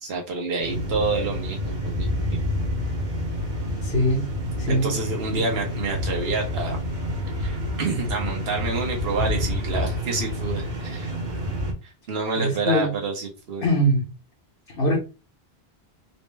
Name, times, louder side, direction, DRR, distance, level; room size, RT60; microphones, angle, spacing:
voice 1, 0.0-2.7 4.7-6.8 7.4-11.1 12.1-13.6, right 4 dB, 75° right, 0 dB, 1.2 m, -28 dB
sound 1, 0.6-11.7, left 1 dB, 50° right, 0.9 m, -28 dB
voice 2, 3.8-4.3 4.6-5.0 5.3-5.4 12.4-12.9 13.6-14.1 14.8-15.0, equal, 60° left, -4 dB, 1.2 m, -22 dB
4.1 x 2.1 x 3.3 m, 0.31 s
omnidirectional pair, 1.0 m